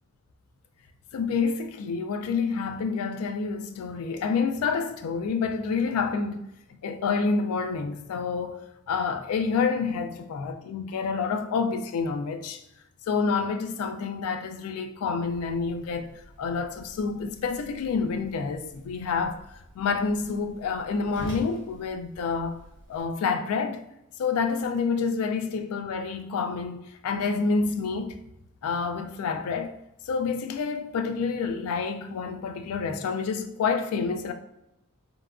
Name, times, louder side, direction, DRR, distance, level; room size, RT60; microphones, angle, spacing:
voice 1, 1.1-6.5 6.8-12.6 13.1-16.1 16.4-19.4 19.8-22.6 22.9-23.8 24.2-28.2 28.6-29.7 30.1-34.3, left 5 dB, 75° left, 0.3 m, -28 dB
Whoosh swoosh swish, 15.2-23.0, right 1 dB, 55° left, 1.3 m, -47 dB
2.8 x 2.3 x 2.3 m
head